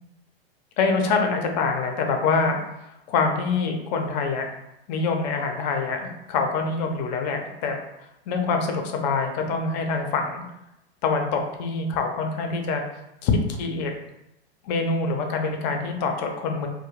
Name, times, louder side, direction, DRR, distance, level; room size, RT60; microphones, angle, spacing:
voice 1, 0.8-2.6 3.1-4.5 4.9-7.8 8.3-10.4 11.0-12.8 13.2-13.9 14.6-16.7, left 4 dB, 45° left, 4 dB, 0.5 m, -25 dB
2.3 x 2.1 x 3.1 m, 0.87 s
hypercardioid pair, 125°, 31 cm